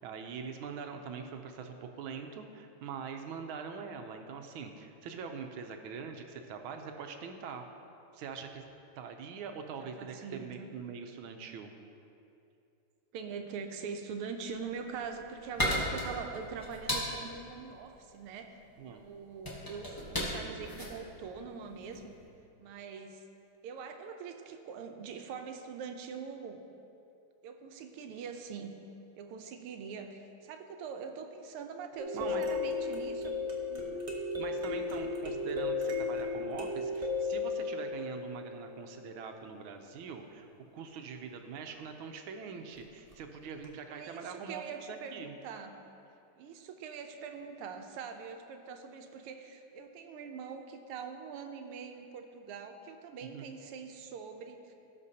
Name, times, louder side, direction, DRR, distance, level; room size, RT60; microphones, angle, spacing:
voice 1, 0.0-7.6 8.1-8.6 9.0-11.7 18.8-19.0 32.1-32.5 34.4-44.6 44.9-45.3 53.3-53.5, right 6 dB, 75° right, 5 dB, 1.5 m, -43 dB
voice 2, 9.8-10.8 13.1-18.6 18.8-22.2 22.6-23.2 23.6-26.6 27.4-28.8 29.2-33.4 33.7-34.0 43.9-45.8 46.4-54.7, right 6 dB, 90° right, 5 dB, 1.6 m, -43 dB
sound 1, 14.7-22.1, equal, 15° left, 0.8 m, -36 dB
sound 2, 32.0-38.9 43.1-43.2 43.6-43.7, left 3 dB, 45° right, 0.4 m, -34 dB
17.5 x 5.8 x 2.8 m, 2.7 s
omnidirectional pair, 2.4 m